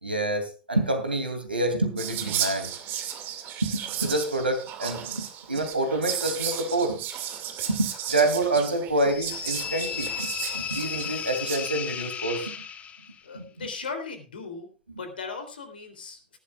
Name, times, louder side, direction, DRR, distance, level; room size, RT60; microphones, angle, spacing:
voice 1, 0.0-2.7 3.6-7.0 7.7-10.3 10.5-12.5 13.3-13.7, right 2 dB, 85° right, 6 dB, 2.8 m, -27 dB
Whispering, 2.0-11.6, right 10 dB, 35° right, 2.2 m, -34 dB
sound 1, 9.0-13.2, left 8 dB, 25° left, 1.4 m, -34 dB
voice 2, 13.2-14.7 15.0-16.4, left 4 dB, 70° left, 8 dB, 3.4 m, -37 dB
19.5 x 11.5 x 2.4 m, 0.34 s
figure-of-eight pair, 90°, 5 cm